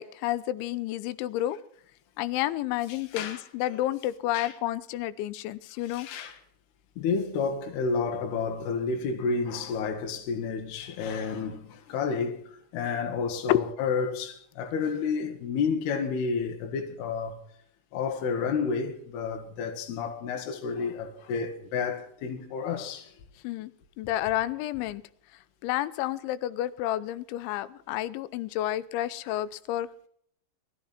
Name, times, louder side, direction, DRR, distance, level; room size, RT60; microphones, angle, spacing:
voice 1, 0.0-1.6 2.2-6.1 13.5-13.7 23.4-23.7 24.0-25.0 25.6-29.9, left 14 dB, 85° left, 3.1 m, -30 dB
voice 2, 2.9-3.4 3.7-3.8 4.3-4.5 5.9-6.4 7.0-12.4 12.7-17.4 17.9-23.1 29.2-29.3, left 5 dB, 65° left, 3.4 m, -30 dB
21.0 x 14.0 x 4.3 m
omnidirectional pair, 5.3 m